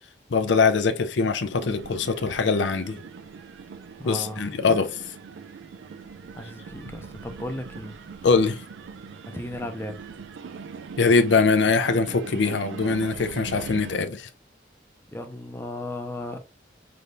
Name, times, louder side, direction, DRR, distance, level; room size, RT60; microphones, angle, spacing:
voice 1, 0.3-3.0 4.0-4.9 8.2-8.6 11.0-14.3, left 4 dB, 80° left, 0.5 m, -22 dB
sound 1, 1.5-14.0, right 5 dB, 80° right, 0.4 m, -41 dB
voice 2, 4.0-4.8 6.4-8.0 9.3-10.0 15.1-16.4, left 1 dB, 15° left, 0.5 m, -35 dB
5.3 x 3.3 x 2.6 m
head